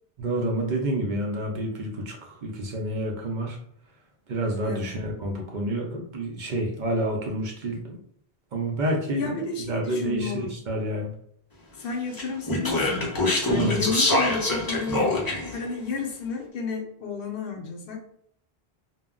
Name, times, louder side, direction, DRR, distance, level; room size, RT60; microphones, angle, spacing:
voice 1, 0.2-3.6 4.3-8.0 8.5-9.4 9.7-11.1 13.5-13.9, right 1 dB, 55° right, 0 dB, 0.6 m, -28 dB
voice 2, 9.2-10.5 11.7-13.1 13.4-15.2 15.5-18.0, left 4 dB, 65° left, 2 dB, 0.8 m, -32 dB
Speech, 12.1-15.6, left 2 dB, 25° left, 0.5 m, -24 dB
2.2 x 2.0 x 3.6 m, 0.69 s
omnidirectional pair, 1.0 m